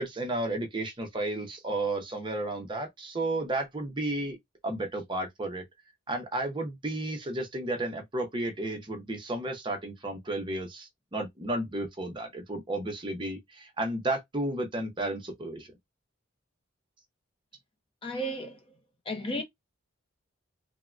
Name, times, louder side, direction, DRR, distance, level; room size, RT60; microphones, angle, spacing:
voice 1, 0.0-4.4 4.6-5.6 6.1-15.7, right 2 dB, 25° right, 0.6 m, -32 dB
voice 2, 18.0-18.6 19.1-19.4, equal, 25° left, 0.5 m, -33 dB
3.5 x 2.1 x 2.3 m
head